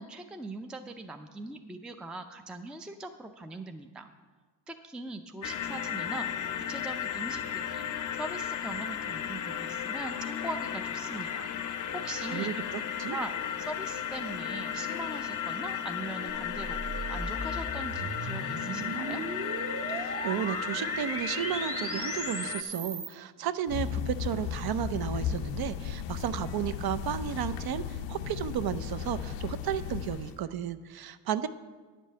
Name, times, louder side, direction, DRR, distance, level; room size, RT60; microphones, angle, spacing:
voice 1, 0.0-4.1 4.7-6.3 6.6-7.8 8.2-11.5 11.9-12.5 13.1-13.3 13.6-16.8 17.1-19.2, right 2 dB, ahead, 6 dB, 0.4 m, -41 dB
sound 1, 5.4-22.6, left 9 dB, 50° left, 0.6 m, -35 dB
voice 2, 12.3-13.2 19.9-31.5, right 9 dB, 60° right, 13 dB, 0.6 m, -33 dB
sound 2, 16.3-23.1, right 4 dB, 35° right, 0.9 m, -38 dB
sound 3, 23.7-30.4, left 8 dB, 85° left, 0.6 m, -35 dB
9.9 x 5.3 x 7.5 m, 1.4 s
cardioid pair, 105°, 42 cm